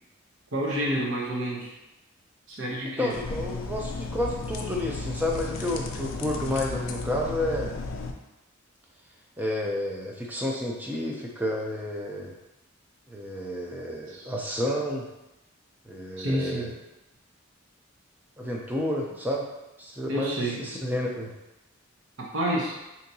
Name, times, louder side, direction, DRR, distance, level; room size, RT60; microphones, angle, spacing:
voice 1, 0.5-1.7 2.5-3.1 14.1-14.3 16.2-16.7 20.1-20.6 22.3-22.7, right 1 dB, 60° right, -3 dB, 0.8 m, -29 dB
voice 2, 3.0-7.7 9.4-12.4 13.1-15.1 15.9-16.7 18.4-19.4 19.8-21.3, left 1 dB, 10° right, -1 dB, 0.4 m, -30 dB
sound 1, 3.1-8.1, left 3 dB, 70° left, 0.4 m, -34 dB
4.4 x 2.8 x 2.7 m, 0.96 s
head